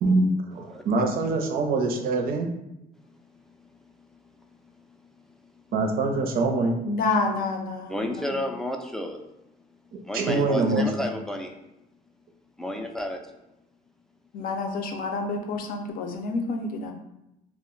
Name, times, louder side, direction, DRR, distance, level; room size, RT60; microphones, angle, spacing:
voice 1, 0.0-2.5 5.7-6.8 10.1-11.1, right 3 dB, 60° right, 3 dB, 0.5 m, -24 dB
voice 2, 6.8-8.4 14.3-16.9, left 3 dB, 60° left, 4 dB, 0.5 m, -29 dB
voice 3, 7.9-9.2 10.0-11.5 12.6-13.2, left 1 dB, 5° left, 3 dB, 0.3 m, -31 dB
2.3 x 2.1 x 3.7 m, 0.88 s
cardioid pair, 110°, 17 cm